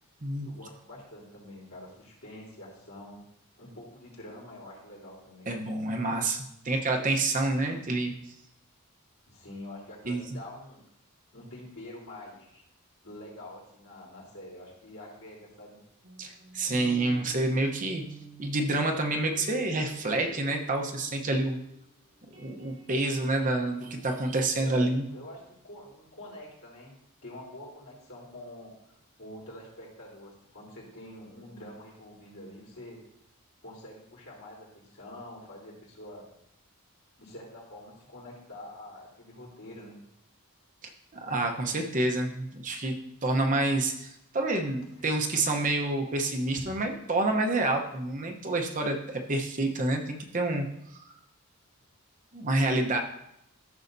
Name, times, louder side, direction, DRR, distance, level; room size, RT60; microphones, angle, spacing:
voice 1, 0.4-3.3 3.6-5.5 9.3-10.8 11.3-12.6 13.0-15.8 24.6-26.9 27.2-28.7 29.2-33.0 33.6-36.3 37.2-40.0 44.9-45.1, left 1 dB, 75° left, -4 dB, 3.6 m, -46 dB
voice 2, 5.5-8.1 10.0-10.2 16.2-18.0 18.4-21.6 22.4-25.0 41.2-42.9 43.2-50.6 51.1-51.2 52.3-53.0, right 2 dB, 35° right, 3 dB, 0.9 m, -28 dB
sound 1, 16.0-21.9 22.1-25.6, right 4 dB, 65° right, 2.0 m, -51 dB
14.0 x 6.4 x 2.7 m, 0.78 s
head